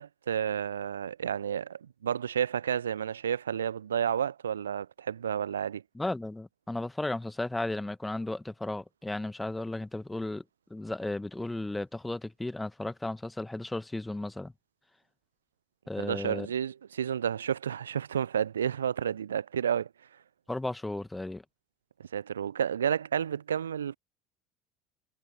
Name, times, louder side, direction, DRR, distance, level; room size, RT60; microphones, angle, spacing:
voice 1, 0.0-5.8 16.0-19.9 22.0-24.0, right 8 dB, 75° right, 0.7 m, -31 dB
voice 2, 6.0-10.4 10.7-14.5 15.9-16.5 20.5-21.4, left 2 dB, 10° left, 1.8 m, -34 dB
figure-of-eight pair, 65°, 0 cm